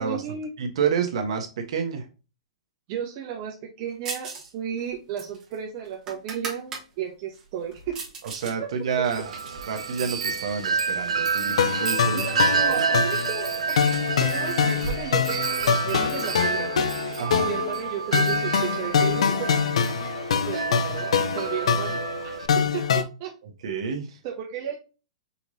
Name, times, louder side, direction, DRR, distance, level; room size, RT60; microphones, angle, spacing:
voice 1, 0.0-0.5 2.9-8.0 8.6-8.7 12.1-13.9 14.2-19.5 20.3-23.3 24.2-24.8, right 9 dB, 40° right, 1 dB, 0.9 m, -34 dB
voice 2, 0.6-2.1 8.2-9.3 9.7-12.3 12.6-12.9 17.2-17.5 23.6-24.2, right 6 dB, 65° right, 4 dB, 1.2 m, -29 dB
sound 1, 4.1-4.5 4.8-6.9 7.3-8.6 8.9-10.6 11.3-11.9 12.1-12.2 12.5-15.6, right 4 dB, 20° right, 1.3 m, -39 dB
Wind chime, 9.0-22.5, right 5 dB, 85° right, 0.6 m, -29 dB
sound 2, 11.6-23.0, left 6 dB, 75° left, 0.6 m, -25 dB
5.6 x 3.1 x 2.7 m, 0.31 s
hypercardioid pair, 145°, 3 cm